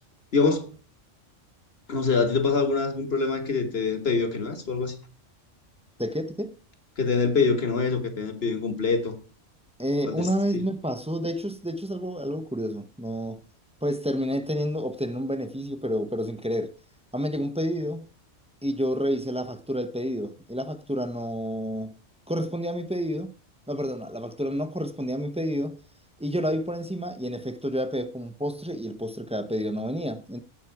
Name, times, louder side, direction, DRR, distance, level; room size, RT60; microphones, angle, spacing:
voice 1, 0.3-0.7 1.9-5.0 7.0-9.1 10.0-10.3, left 4 dB, 55° left, 1.9 m, -25 dB
voice 2, 6.0-6.6 9.8-13.4 13.8-16.7 17.1-18.1 18.6-22.0 22.3-23.3 23.7-25.8 26.2-30.4, equal, 5° right, 0.6 m, -29 dB
16.0 x 5.9 x 4.7 m
omnidirectional pair, 1.3 m